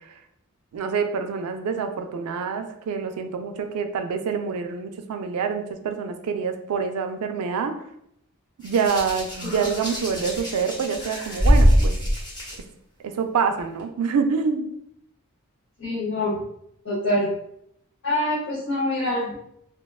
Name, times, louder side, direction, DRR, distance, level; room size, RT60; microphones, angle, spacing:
voice 1, 0.7-7.8 8.6-11.9 13.0-14.7, right 5 dB, 80° right, 7 dB, 0.3 m, -26 dB
Hands, 8.6-12.6 13.6-13.8, equal, 20° left, 0.7 m, -22 dB
voice 2, 15.8-16.3 16.8-17.3 18.0-19.3, left 1 dB, 65° left, -8 dB, 0.9 m, -25 dB
2.8 x 2.2 x 2.3 m, 0.74 s
head